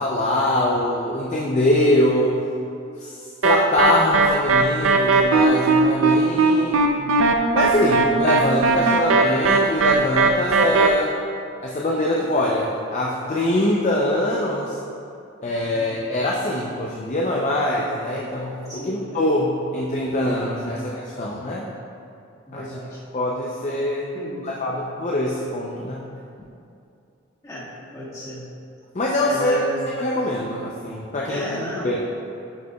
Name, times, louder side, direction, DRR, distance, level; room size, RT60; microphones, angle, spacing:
voice 1, 0.0-2.3 3.0-3.1 3.4-6.8 7.5-11.1 11.6-14.8 15.4-21.7 22.5-22.7 23.1-24.1 24.4-26.0 28.9-31.4 31.8-32.0, left 1 dB, 35° left, -3 dB, 0.5 m, -23 dB
sound 1, 3.4-10.9, right 3 dB, 80° right, 0.5 m, -18 dB
voice 2, 6.7-7.2 15.7-16.0 18.7-19.2 20.8-20.9 22.5-23.0 24.1-24.5 27.4-28.5 29.2-29.9 31.3-31.9, equal, 20° left, -9 dB, 1.7 m, -33 dB
10.5 x 6.6 x 2.3 m, 2.6 s
head